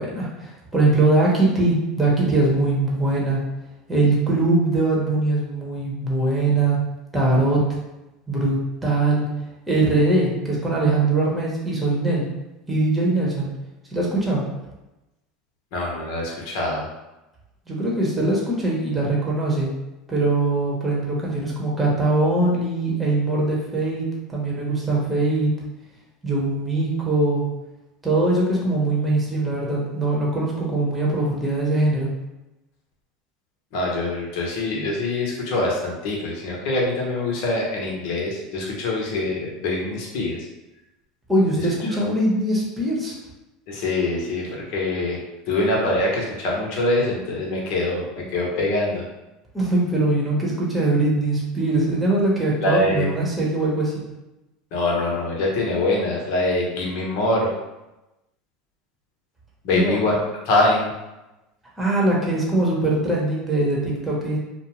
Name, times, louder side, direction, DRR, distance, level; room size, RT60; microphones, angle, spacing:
voice 1, 0.0-3.4 3.9-6.8 7.1-7.6 8.3-9.2 9.7-12.2 12.7-13.5 13.9-14.4 17.7-19.7 20.1-25.5 26.2-27.4 28.0-32.1 41.3-43.1 49.5-53.9 59.7-60.0 61.8-64.4, right 2 dB, 10° right, -5 dB, 1.0 m, -21 dB
voice 2, 15.7-16.9 33.7-40.4 43.7-45.2 45.5-49.0 52.6-53.1 54.7-57.5 59.6-60.2 60.4-60.9, left 2 dB, 65° left, -2 dB, 0.9 m, -24 dB
2.5 x 2.2 x 3.1 m, 0.99 s
supercardioid pair, 100°, 0 cm